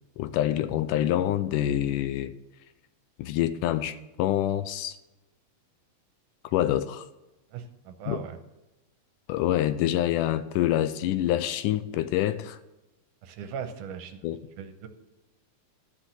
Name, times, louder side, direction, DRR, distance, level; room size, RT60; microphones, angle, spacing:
voice 1, 0.2-2.3 3.2-5.0 6.5-7.1 8.1-8.2 9.3-12.6 14.2-14.4, left 12 dB, 80° left, 13 dB, 2.0 m, -26 dB
voice 2, 7.5-8.4 13.2-14.3 14.6-14.9, right 7 dB, 75° right, 7 dB, 2.2 m, -38 dB
12.5 x 6.0 x 7.7 m, 1.0 s
omnidirectional pair, 3.9 m